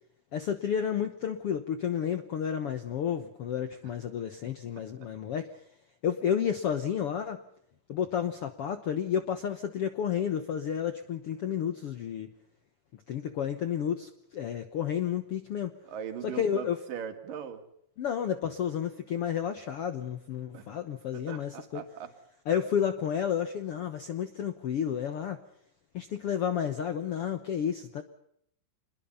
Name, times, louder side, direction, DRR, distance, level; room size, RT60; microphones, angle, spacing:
voice 1, 0.3-5.6 6.0-7.4 7.9-12.3 13.1-15.7 16.2-16.8 18.0-21.8 22.5-25.4 25.9-28.0, left 8 dB, 90° left, 10 dB, 1.2 m, -31 dB
voice 2, 15.8-17.6 20.5-20.7 21.1-22.1, right 8 dB, 65° right, 7 dB, 3.7 m, -40 dB
26.0 x 21.0 x 5.6 m, 0.71 s
omnidirectional pair, 4.3 m